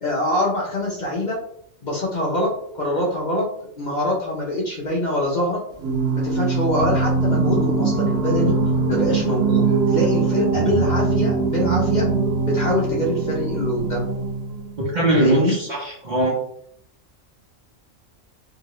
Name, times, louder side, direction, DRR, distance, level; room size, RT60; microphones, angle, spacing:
voice 1, 0.0-1.4 1.8-2.5 2.7-3.4 3.8-5.6 6.1-8.5 8.9-12.0 12.4-14.0 15.1-15.5, left 1 dB, 40° left, -4 dB, 0.8 m, -24 dB
Singing, 5.8-14.7, right 4 dB, 75° right, 1.0 m, -21 dB
voice 2, 14.8-16.4, right 1 dB, 45° right, -4 dB, 0.7 m, -21 dB
2.8 x 2.6 x 3.0 m, 0.69 s
omnidirectional pair, 1.3 m